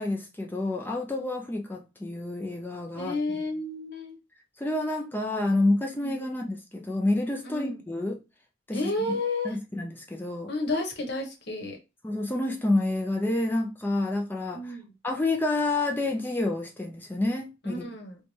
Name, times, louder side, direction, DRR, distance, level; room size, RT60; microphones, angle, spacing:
voice 1, 0.0-3.4 4.6-8.2 8.7-9.2 9.4-10.5 12.0-14.8 15.0-17.8, left 2 dB, 10° left, 0.4 m, -29 dB
voice 2, 3.0-4.2 6.0-6.2 7.4-7.8 8.7-9.5 10.5-11.8 14.5-14.9 17.6-18.2, left 2 dB, 60° left, 1.0 m, -31 dB
3.1 x 2.2 x 4.0 m
head